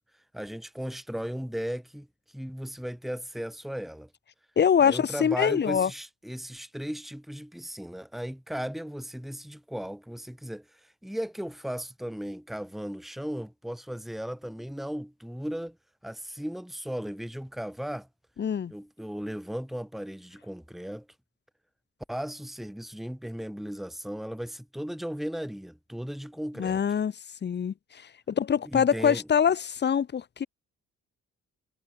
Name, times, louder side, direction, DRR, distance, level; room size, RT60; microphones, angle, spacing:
voice 1, 0.3-4.1 4.8-15.8 16.0-18.1 18.7-21.1 22.1-26.8 28.6-29.3, equal, ahead, 2.3 m, -36 dB
voice 2, 4.6-5.9 18.4-18.7 26.6-27.1 27.4-30.5, left 7 dB, 35° left, 0.8 m, -24 dB
cardioid pair, 90°, 30 cm